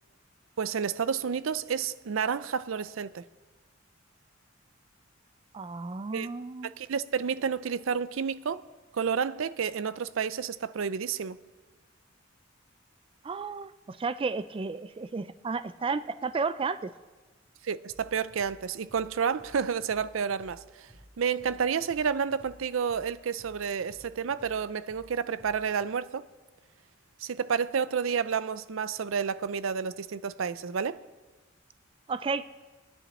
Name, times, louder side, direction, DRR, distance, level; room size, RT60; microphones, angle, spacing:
voice 1, 0.6-3.2 6.1-6.3 6.6-8.6 8.9-11.4 17.6-20.9 21.2-26.2 27.2-31.0, right 6 dB, 80° right, 0.5 m, -30 dB
voice 2, 5.5-6.7 13.2-16.9 32.1-32.4, right 4 dB, 25° right, 0.4 m, -32 dB
sound 1, 17.9-25.9, equal, 10° right, 2.5 m, -56 dB
22.5 x 10.0 x 4.2 m
head